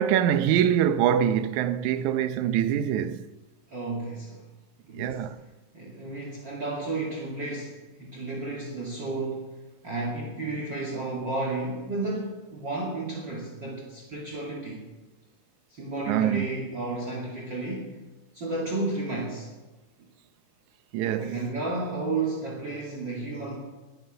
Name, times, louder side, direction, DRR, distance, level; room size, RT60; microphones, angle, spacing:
voice 1, 0.0-3.2 5.0-5.4 16.1-16.5 20.9-21.4, right 9 dB, 75° right, 2.1 m, -24 dB
voice 2, 3.7-4.4 4.9-5.3 5.7-9.5 9.8-14.8 15.7-17.9 18.3-19.5 21.2-23.6, right 2 dB, 35° right, 2.9 m, -32 dB
22.0 x 9.6 x 6.8 m
omnidirectional pair, 3.6 m